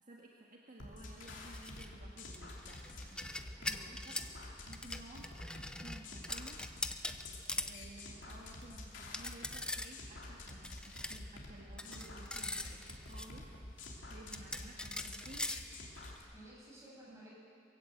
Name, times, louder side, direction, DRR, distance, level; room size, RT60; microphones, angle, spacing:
voice 1, 0.1-3.6 4.0-4.2 4.7-5.3 5.8-6.6 7.3-12.0 12.4-13.5 14.1-15.5, right 1 dB, 45° right, -2 dB, 1.8 m, -55 dB
sound 1, 0.8-16.2, left 2 dB, 75° left, 3.2 m, -49 dB
sound 2, 1.3-1.9 2.2-4.3 4.7-7.8 8.2-8.3 8.6-8.7 9.0-9.9 10.2-11.2 11.8-13.3 13.8-13.9 14.3-16.2, left 1 dB, 5° left, 0.7 m, -42 dB
voice 2, 3.5-4.0 11.8-12.3 16.3-17.3, right 1 dB, 15° right, -5 dB, 7.3 m, -54 dB
22.0 x 16.0 x 7.9 m, 2.4 s
head